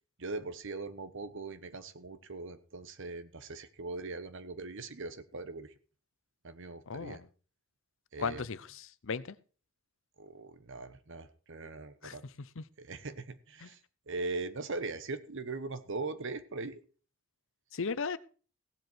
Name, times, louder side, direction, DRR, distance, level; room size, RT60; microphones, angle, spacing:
voice 1, 0.2-5.7 6.4-7.2 8.1-8.4 10.2-12.2 12.8-13.8 14.1-16.8, right 3 dB, 60° right, 13 dB, 1.2 m, -40 dB
voice 2, 6.9-7.3 8.2-9.3 12.0-12.1 12.6-12.7 13.6-13.7 17.7-18.2, left 5 dB, 65° left, 16 dB, 0.7 m, -36 dB
16.5 x 7.8 x 4.6 m, 0.39 s
head